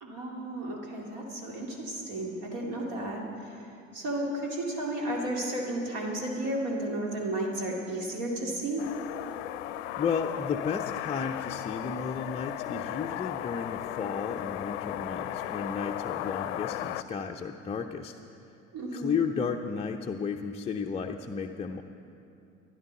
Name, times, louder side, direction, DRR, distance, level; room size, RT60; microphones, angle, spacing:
voice 1, 0.0-3.2 3.9-8.9 18.7-19.2, right 1 dB, 55° right, -1 dB, 2.5 m, -33 dB
sound 1, 8.8-17.0, left 13 dB, 60° left, 0.6 m, -35 dB
voice 2, 10.0-18.2 18.9-21.8, left 6 dB, 15° left, 1 dB, 0.6 m, -33 dB
14.5 x 11.0 x 6.8 m, 2.6 s
figure-of-eight pair, 70°, 40 cm